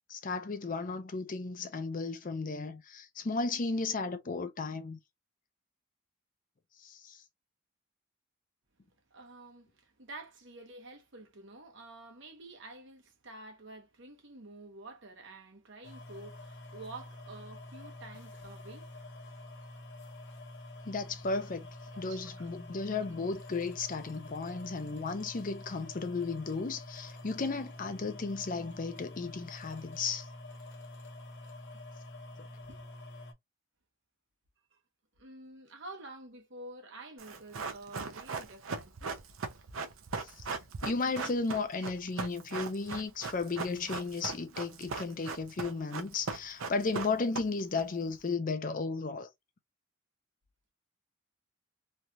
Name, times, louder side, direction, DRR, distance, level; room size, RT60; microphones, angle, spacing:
voice 1, 0.1-5.0 6.8-7.2 20.8-21.7 22.0-30.3 40.2-49.3, left 4 dB, 40° left, 0.5 m, -34 dB
voice 2, 9.1-19.0 21.9-22.5 32.7-32.9 34.7-34.8 35.2-39.2 39.5-39.6, right 2 dB, 60° right, 1.0 m, -49 dB
sound 1, 15.8-33.3, left 2 dB, 60° left, 0.9 m, -47 dB
Run, 37.2-47.8 48.1-48.2, right 4 dB, 80° right, 0.6 m, -39 dB
3.2 x 2.3 x 2.6 m
head